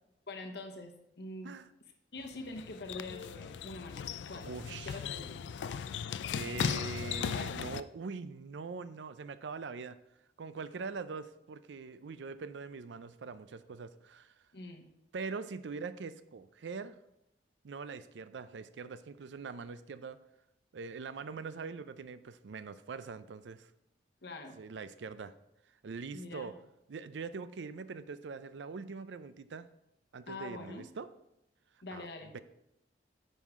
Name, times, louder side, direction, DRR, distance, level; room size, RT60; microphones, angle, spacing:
voice 1, 0.3-1.5 2.1-5.5 14.5-14.9 24.2-24.6 26.1-26.5 30.3-30.8 31.8-32.4, left 2 dB, 65° left, 4 dB, 1.1 m, -45 dB
sound 1, 2.2-7.8, left 7 dB, 85° left, 0.3 m, -37 dB
voice 2, 4.4-5.0 6.3-10.0 10.4-14.3 15.1-17.0 17.6-20.2 20.7-23.7 24.5-25.3 25.8-26.5 26.9-29.7 30.1-31.1 31.9-32.1 32.3-32.4, right 4 dB, 85° right, 13 dB, 0.5 m, -43 dB
9.3 x 5.5 x 3.6 m, 0.85 s
head